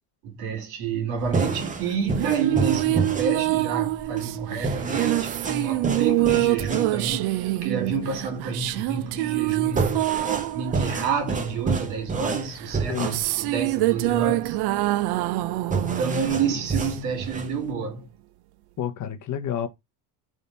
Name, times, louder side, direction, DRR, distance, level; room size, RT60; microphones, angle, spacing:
voice 1, 0.2-10.2 10.5-14.6 15.8-18.1, right 6 dB, 85° right, 1.6 m, -29 dB
sound 1, 1.2-17.7, right 4 dB, 20° right, 0.8 m, -30 dB
sound 2, 1.8-11.7 12.6-17.3, right 18 dB, 65° right, 0.5 m, -26 dB
voice 2, 12.9-13.3 18.8-19.7, left 9 dB, 45° left, 0.8 m, -29 dB
3.5 x 2.7 x 4.1 m
supercardioid pair, 95°, 42 cm